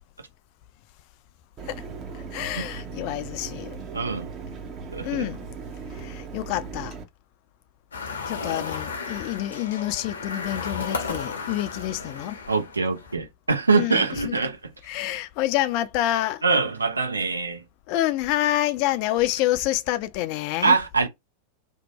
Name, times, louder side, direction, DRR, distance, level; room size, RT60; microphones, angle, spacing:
Mechanisms, 1.6-7.0, right 5 dB, 30° right, 0.7 m, -38 dB
voice 1, 2.3-3.8 5.0-5.4 6.0-7.0 8.3-12.4 13.7-14.4 14.8-16.4 17.9-20.8, left 14 dB, 45° left, 0.3 m, -27 dB
voice 2, 3.9-4.3 4.9-5.3 12.5-14.6 16.4-17.6 20.6-21.1, right 4 dB, 80° right, 0.6 m, -23 dB
sound 1, 7.9-13.1, left 4 dB, 70° left, 0.7 m, -34 dB
2.7 x 2.1 x 2.9 m
figure-of-eight pair, 90°, 0 cm